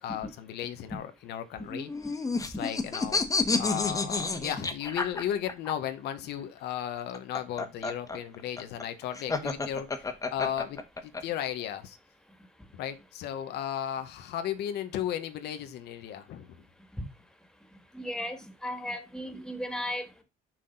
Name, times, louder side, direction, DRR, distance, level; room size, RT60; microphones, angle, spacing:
voice 1, 0.0-1.9 2.5-3.2 3.6-12.0 12.7-16.5, left 10 dB, 80° left, 1.2 m, -35 dB
sound 1, 1.7-5.7 7.0-11.2, left 3 dB, 20° left, 1.4 m, -30 dB
voice 2, 17.9-20.2, left 1 dB, 5° left, 2.0 m, -36 dB
6.5 x 6.0 x 3.9 m
cardioid pair, 110°, 17 cm